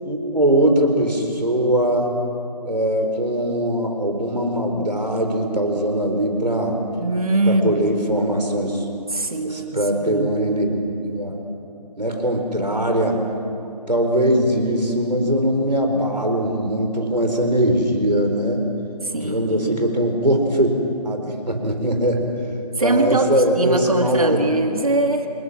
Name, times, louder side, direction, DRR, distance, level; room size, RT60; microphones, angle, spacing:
voice 1, 0.0-2.2 2.6-6.8 7.5-8.9 9.4-11.4 12.0-13.2 13.9-18.6 19.1-20.8 21.0-22.3 22.8-24.4, right 1 dB, 80° right, 3 dB, 4.5 m, -21 dB
voice 2, 7.0-7.8 9.1-10.3 19.0-19.9 22.8-25.3, right 2 dB, 60° right, 5 dB, 1.9 m, -22 dB
27.0 x 20.5 x 6.3 m, 2.8 s
figure-of-eight pair, 155°, 21 cm